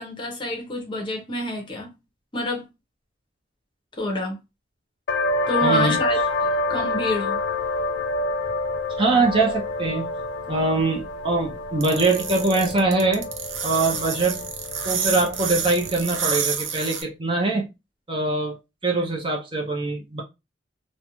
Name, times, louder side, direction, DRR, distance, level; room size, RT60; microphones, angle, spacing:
voice 1, 0.0-1.9 2.3-2.6 4.0-4.4 5.5-6.2 6.7-7.4, left 1 dB, 25° left, 0.6 m, -27 dB
sound 1, 5.1-16.4, left 2 dB, 60° left, 0.3 m, -28 dB
voice 2, 5.6-6.0 9.0-10.2 10.5-13.3 13.6-14.4 14.8-17.7 18.1-18.6 18.8-20.2, right 3 dB, 25° right, 0.5 m, -23 dB
sound 2, 11.8-17.0, right 6 dB, 75° right, 0.6 m, -28 dB
2.4 x 2.1 x 2.9 m
head